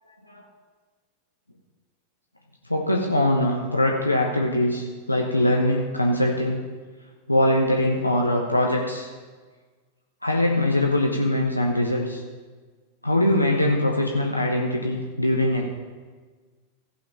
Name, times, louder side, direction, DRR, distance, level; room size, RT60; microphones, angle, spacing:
voice 1, 2.7-6.6 7.3-9.1 10.2-12.2 13.0-15.7, left 1 dB, 85° left, 0 dB, 0.9 m, -22 dB
15.5 x 5.7 x 5.6 m, 1.4 s
figure-of-eight pair, 90°, 0 cm